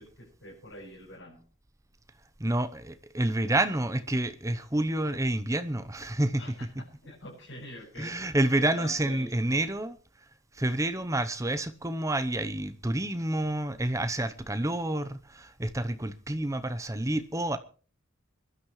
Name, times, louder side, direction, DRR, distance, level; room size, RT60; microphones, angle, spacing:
voice 1, 0.0-1.4 6.4-8.1 8.8-9.3, left 1 dB, 60° left, 7.7 m, -45 dB
voice 2, 2.4-6.4 8.0-10.0 10.5-17.6, right 1 dB, 15° right, 0.8 m, -29 dB
25.0 x 12.0 x 3.2 m
head